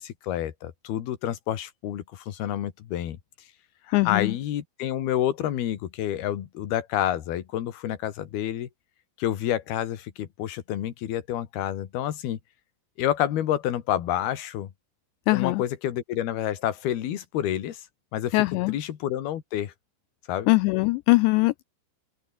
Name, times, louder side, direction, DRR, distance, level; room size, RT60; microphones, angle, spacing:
voice 1, 0.0-3.2 3.8-8.7 9.2-12.4 13.0-14.7 15.3-17.9 18.1-18.3 18.7-19.7 20.3-20.5, left 11 dB, 60° left, 3.4 m, -29 dB
voice 2, 3.9-4.4 15.3-15.6 18.3-18.8 20.5-21.6, left 23 dB, 90° left, 2.5 m, -21 dB
open air
omnidirectional pair, 5.6 m